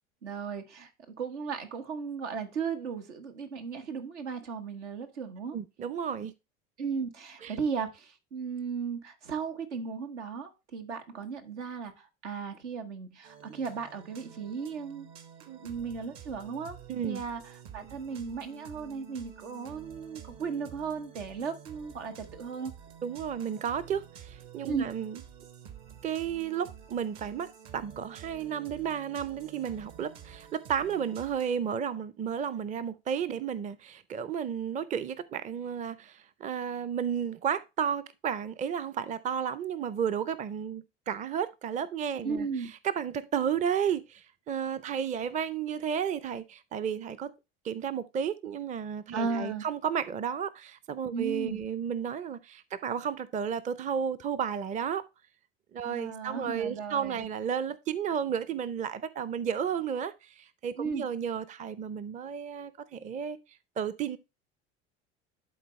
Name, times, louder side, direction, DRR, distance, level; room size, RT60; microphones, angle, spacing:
voice 1, 0.2-0.9 1.2-5.6 6.8-15.1 15.6-22.7 24.7-24.9 42.2-42.7 49.1-49.6 51.1-51.6 55.8-57.3 60.8-61.0, right 5 dB, 80° right, 1.1 m, -36 dB
voice 2, 5.5-6.3 7.4-7.5 15.5-15.7 16.9-17.2 23.0-25.2 26.0-42.5 42.8-47.3 47.6-55.0 55.7-63.4 63.8-64.2, right 8 dB, 20° right, 0.5 m, -33 dB
sound 1, 13.2-31.6, right 8 dB, 55° right, 1.2 m, -49 dB
11.5 x 4.0 x 3.1 m
hypercardioid pair, 70°, 34 cm